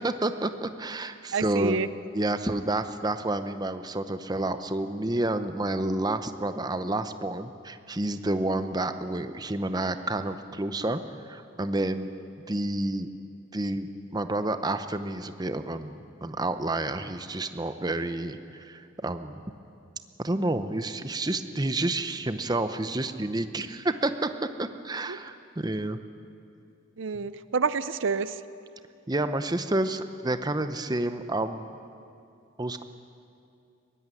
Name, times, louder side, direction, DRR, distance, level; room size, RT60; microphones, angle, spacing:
voice 1, 0.0-1.8 2.1-11.0 11.3-12.1 12.4-13.1 13.5-19.4 20.2-26.0 29.1-31.7 32.6-32.8, right 2 dB, 20° right, 10 dB, 0.7 m, -29 dB
voice 2, 1.3-1.9 25.1-25.2 27.0-28.4, right 5 dB, 70° right, 14 dB, 0.6 m, -28 dB
21.5 x 17.0 x 9.7 m, 2.6 s
head